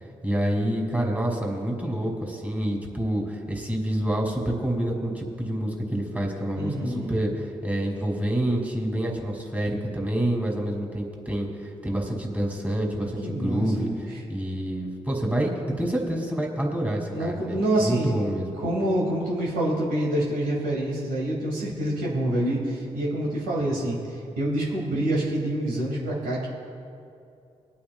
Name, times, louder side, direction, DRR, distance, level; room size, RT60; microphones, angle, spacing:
voice 1, 0.2-18.5, right 1 dB, 10° right, -1 dB, 2.8 m, -27 dB
voice 2, 6.5-7.1 13.2-14.0 17.1-18.1 18.6-24.0 24.4-26.5, right 1 dB, 85° right, -5 dB, 2.5 m, -26 dB
23.5 x 8.6 x 2.5 m, 2.5 s
supercardioid pair, 45°, 14 cm